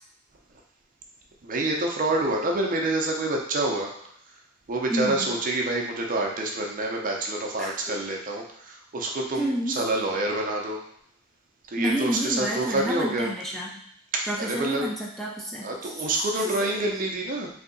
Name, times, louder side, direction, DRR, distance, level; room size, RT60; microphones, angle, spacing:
voice 1, 1.4-3.9 4.7-10.8 11.7-13.3 14.1-14.9 15.6-17.5, right 2 dB, 45° right, 0 dB, 0.6 m, -27 dB
voice 2, 4.9-5.3 7.6-8.0 9.3-9.8 11.8-13.8 14.3-16.1 16.4-16.7, equal, ahead, -4 dB, 0.5 m, -30 dB
3.2 x 2.7 x 3.9 m, 0.71 s
head